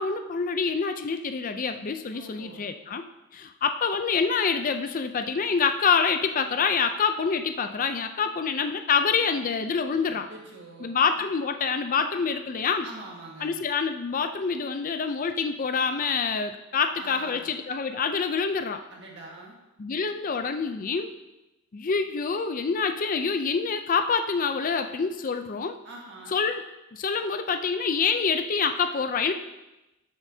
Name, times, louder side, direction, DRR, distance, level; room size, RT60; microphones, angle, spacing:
voice 1, 0.0-3.0 3.3-10.3 10.8-12.9 13.4-18.8 19.8-21.1 21.7-25.8 26.3-26.6 26.9-29.3, left 5 dB, 40° left, 8 dB, 0.5 m, -26 dB
voice 2, 2.1-2.6 10.0-11.2 12.8-13.6 17.0-17.5 18.9-19.6 25.8-26.4, right 2 dB, 60° right, -3 dB, 1.7 m, -44 dB
13.5 x 7.3 x 2.8 m, 0.98 s
head